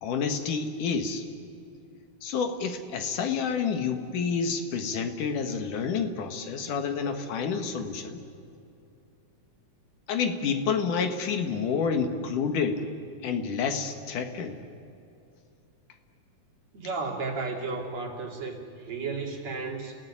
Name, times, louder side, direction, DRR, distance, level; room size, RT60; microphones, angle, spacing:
voice 1, 0.0-1.2 2.2-8.2 10.1-12.8 13.2-14.6, left 6 dB, 75° left, 6 dB, 3.2 m, -29 dB
voice 2, 16.7-20.0, right 4 dB, 55° right, 1 dB, 4.0 m, -33 dB
30.0 x 17.0 x 10.0 m, 2.6 s
omnidirectional pair, 3.7 m